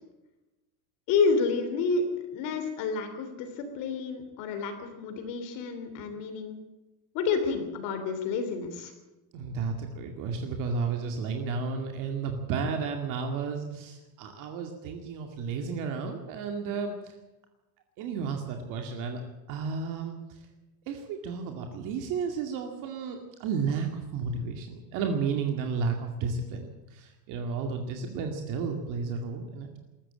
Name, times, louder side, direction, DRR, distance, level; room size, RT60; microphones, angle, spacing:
voice 1, 1.1-2.0 2.3-6.6 7.1-8.9, left 4 dB, 50° left, 7 dB, 3.4 m, -29 dB
voice 2, 9.3-16.9 18.0-19.2 19.5-20.2 20.9-29.7, right 5 dB, 45° right, 4 dB, 2.3 m, -32 dB
20.5 x 14.5 x 8.8 m, 1.0 s
cardioid pair, 175°, 43 cm